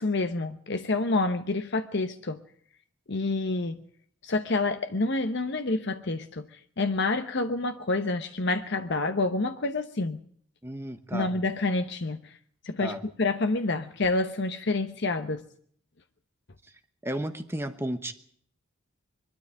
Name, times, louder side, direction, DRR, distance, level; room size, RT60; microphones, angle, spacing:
voice 1, 0.0-2.4 3.1-3.8 4.2-10.2 11.1-12.4 12.6-15.4, left 2 dB, 55° left, 0.9 m, -28 dB
voice 2, 10.6-11.3 12.8-13.0 17.0-18.1, right 1 dB, 10° right, 1.1 m, -33 dB
23.5 x 13.0 x 8.9 m
head